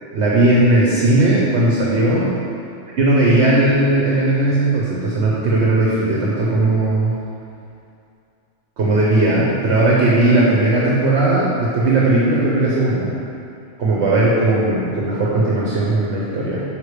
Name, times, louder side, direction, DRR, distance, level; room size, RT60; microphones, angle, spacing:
voice 1, 0.1-2.3 3.0-7.1 8.8-13.2 13.8-16.6, right 2 dB, 60° right, -5 dB, 1.1 m, -17 dB
5.4 x 4.9 x 4.9 m, 2.6 s
omnidirectional pair, 1.4 m